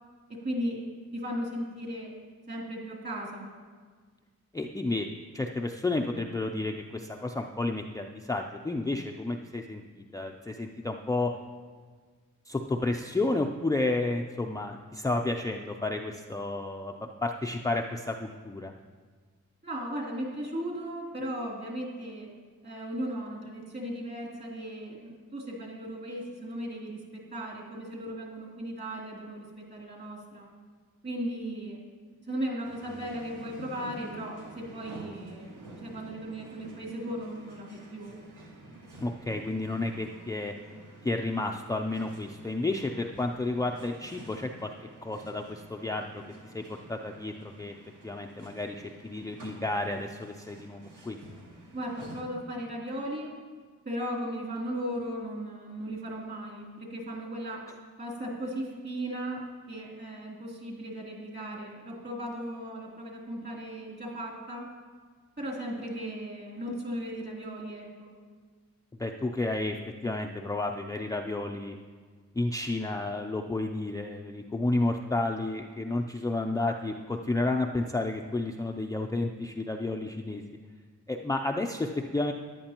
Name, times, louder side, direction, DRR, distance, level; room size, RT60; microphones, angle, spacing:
voice 1, 0.3-0.8 1.1-2.1 2.5-3.5 19.6-22.3 22.6-30.5 31.0-31.8 32.2-38.2 51.7-53.3 53.8-57.6 58.0-64.7 65.4-68.1, equal, 35° right, -3 dB, 3.0 m, -36 dB
voice 2, 4.5-5.1 5.3-11.3 12.5-16.9 17.2-18.7 39.0-40.5 41.0-44.7 45.0-46.2 46.5-46.6 46.9-47.7 48.0-51.2 69.0-69.8 70.0-71.8 72.4-80.4 81.1-82.3, left 2 dB, 10° left, 2 dB, 0.4 m, -31 dB
sound 1, 32.6-52.2, right 2 dB, 80° right, 2.3 m, -50 dB
14.0 x 11.0 x 2.9 m, 1.5 s
wide cardioid pair, 125°, 30 cm